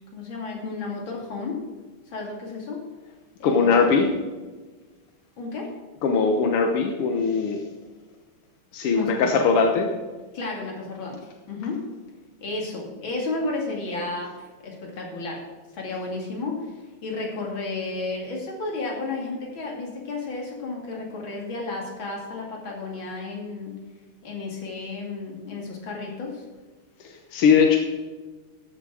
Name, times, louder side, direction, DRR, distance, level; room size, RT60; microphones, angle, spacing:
voice 1, 0.1-1.6 2.1-2.8 3.4-4.1 5.4-5.7 8.9-9.5 10.3-11.2 11.5-11.9 12.4-15.4 15.7-23.8 24.2-26.4, left 3 dB, 60° left, -1 dB, 3.2 m, -32 dB
voice 2, 3.4-4.1 6.0-7.6 8.7-9.9 27.0-27.8, left 5 dB, 90° left, 3 dB, 2.0 m, -20 dB
14.0 x 7.4 x 4.9 m, 1.3 s
omnidirectional pair, 2.4 m